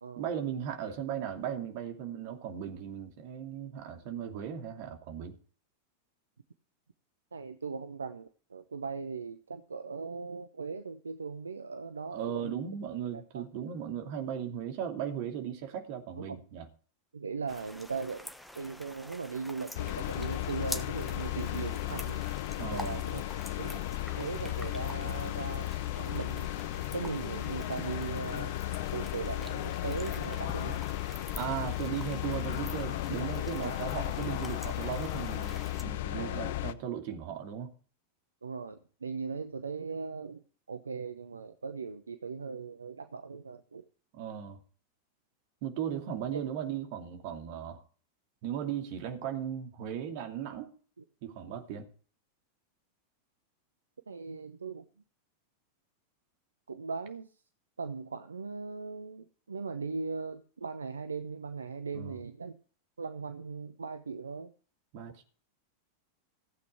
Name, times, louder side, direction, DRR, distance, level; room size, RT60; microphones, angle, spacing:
voice 1, 0.2-5.4 12.1-16.7 22.6-23.0 31.4-37.7 44.1-44.6 45.6-47.8 48.4-50.7 51.2-51.9 61.9-62.2 64.9-65.2, right 9 dB, 45° right, 2.6 m, -37 dB
voice 2, 7.3-12.7 13.1-13.4 16.2-16.4 17.1-18.3 18.5-22.3 22.7-23.2 23.5-23.8 24.2-25.7 25.9-26.5 26.9-28.6 28.9-30.8 33.6-33.8 36.1-36.4 38.4-40.4 40.7-43.8 54.1-54.9 56.7-57.3 57.8-62.6 63.0-64.5, right 5 dB, 75° right, 0.8 m, -39 dB
sound 1, 17.5-35.8, left 1 dB, ahead, 1.2 m, -47 dB
sound 2, 19.7-36.7, left 15 dB, 55° left, 0.7 m, -35 dB
16.0 x 8.4 x 4.4 m
figure-of-eight pair, 90°, 0 cm